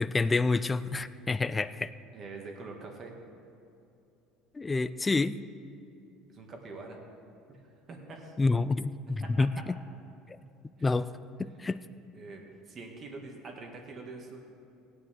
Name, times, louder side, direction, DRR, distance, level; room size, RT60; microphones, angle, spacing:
voice 1, 0.0-1.9 4.5-5.4 8.4-9.5 10.8-11.1 11.4-11.8, left 3 dB, 15° left, 13 dB, 0.4 m, -28 dB
voice 2, 2.1-3.1 6.3-7.0 7.5-7.6 7.9-8.3 9.2-9.3 12.1-14.4, right 3 dB, 35° right, 1 dB, 2.0 m, -44 dB
17.5 x 9.8 x 3.8 m, 2.7 s
supercardioid pair, 120°, 0 cm